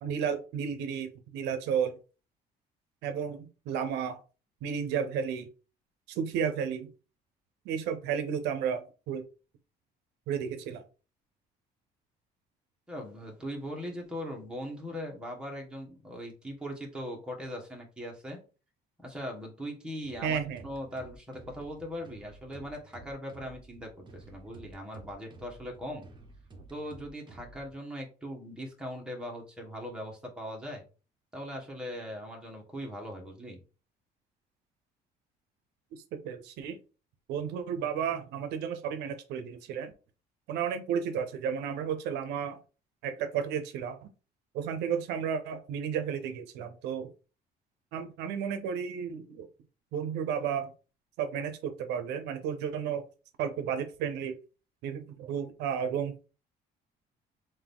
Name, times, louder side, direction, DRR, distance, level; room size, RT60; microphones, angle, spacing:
voice 1, 0.0-2.0 3.0-4.2 4.6-5.5 6.1-6.9 7.7-9.2 10.3-10.8 20.2-20.6 36.1-36.8 37.3-39.9 40.5-42.6 43.0-44.1 44.5-47.1 47.9-49.5 49.9-50.7 51.2-53.0 53.4-54.3 54.8-56.3, right 7 dB, 85° right, 9 dB, 0.6 m, -32 dB
voice 2, 12.9-18.4 19.0-26.0 26.7-30.8 31.3-33.6, equal, 5° right, -1 dB, 1.3 m, -40 dB
sound 1, 20.0-27.7, right 2 dB, 30° right, 0.8 m, -52 dB
3.8 x 2.6 x 3.5 m, 0.34 s
cardioid pair, 110°, 17 cm